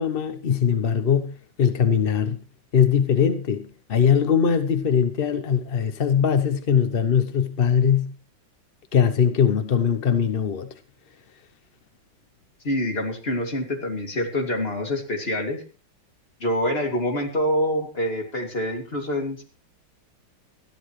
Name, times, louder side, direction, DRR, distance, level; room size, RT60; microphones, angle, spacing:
voice 1, 0.0-2.4 2.7-8.1 8.9-10.7, left 7 dB, 50° left, 0.7 m, -21 dB
voice 2, 12.6-15.6 16.4-19.4, left 1 dB, 30° left, 2.8 m, -26 dB
20.5 x 13.5 x 3.2 m
omnidirectional pair, 2.1 m